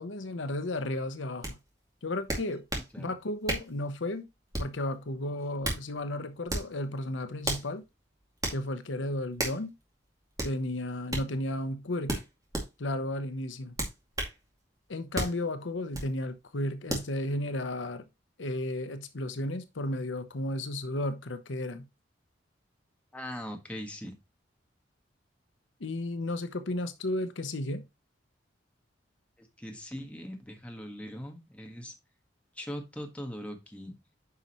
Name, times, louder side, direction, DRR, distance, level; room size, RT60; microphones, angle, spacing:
voice 1, 0.0-1.6 2.0-2.6 3.0-4.3 4.6-7.8 8.5-9.7 10.4-12.2 12.8-13.7 14.9-18.0 18.4-21.9 25.8-27.8, left 1 dB, 80° left, 0.9 m, -33 dB
sound 1, 1.4-1.5 2.3-2.9 3.5-3.7 4.5-4.8 5.4-5.8 6.5-6.7 7.4-7.7 8.4-8.6 9.4-9.6 10.4-10.5 11.1-11.3 12.1-12.7 13.8-14.4 15.1-15.4 15.9-16.1 16.9-17.1, right 1 dB, 20° right, 2.4 m, -32 dB
voice 2, 23.1-24.2 29.4-31.9 32.5-33.9, equal, 5° left, 1.6 m, -40 dB
9.6 x 5.4 x 3.0 m
head